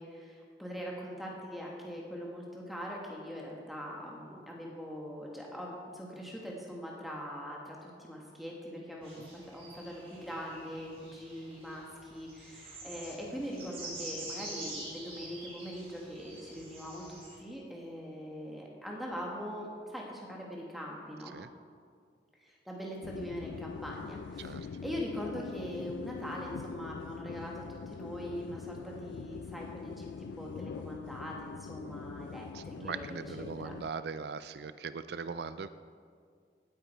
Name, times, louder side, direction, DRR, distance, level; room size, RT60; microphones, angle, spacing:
voice 1, 0.0-21.3 22.4-33.8, equal, ahead, -3 dB, 1.8 m, -42 dB
sound 1, 9.0-17.4, right 2 dB, 30° right, 3.8 m, -46 dB
sound 2, 23.0-33.9, left 6 dB, 80° left, 0.3 m, -43 dB
voice 2, 32.5-35.7, right 5 dB, 65° right, 13 dB, 0.4 m, -40 dB
17.0 x 9.0 x 4.5 m, 2.1 s
head